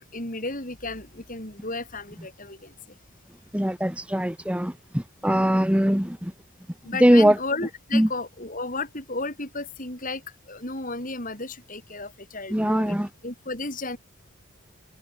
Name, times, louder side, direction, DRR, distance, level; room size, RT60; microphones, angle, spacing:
voice 1, 0.1-2.7 6.8-14.0, left 3 dB, 40° left, 5.7 m, -33 dB
voice 2, 3.5-6.3 7.0-7.4 7.9-8.1 12.5-13.1, equal, 5° right, 1.5 m, -21 dB
head